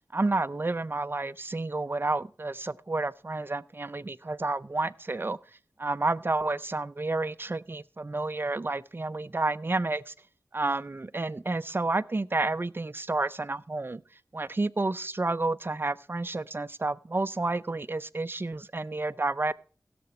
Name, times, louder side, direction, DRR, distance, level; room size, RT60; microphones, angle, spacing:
voice 1, 0.1-5.4 5.8-10.1 10.5-14.0 14.3-19.5, right 2 dB, 35° right, 16 dB, 0.5 m, -30 dB
16.0 x 6.9 x 4.3 m, 0.39 s
wide cardioid pair, 50°, 7 cm